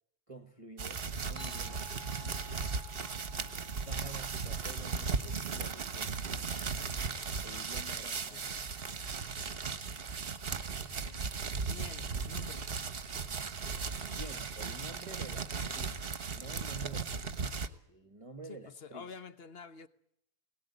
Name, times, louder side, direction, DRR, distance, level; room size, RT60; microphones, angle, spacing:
voice 1, 0.3-2.7 3.8-6.7 7.4-8.6 14.1-17.4 17.9-19.1, right 3 dB, 25° right, 1.2 m, -49 dB
sound 1, 0.8-17.7, right 5 dB, 45° right, 1.2 m, -37 dB
sound 2, 1.4-6.3, left 2 dB, 15° left, 1.8 m, -55 dB
voice 2, 11.6-12.7 18.5-19.9, left 6 dB, 45° left, 1.2 m, -48 dB
21.0 x 18.0 x 9.4 m
omnidirectional pair, 1.5 m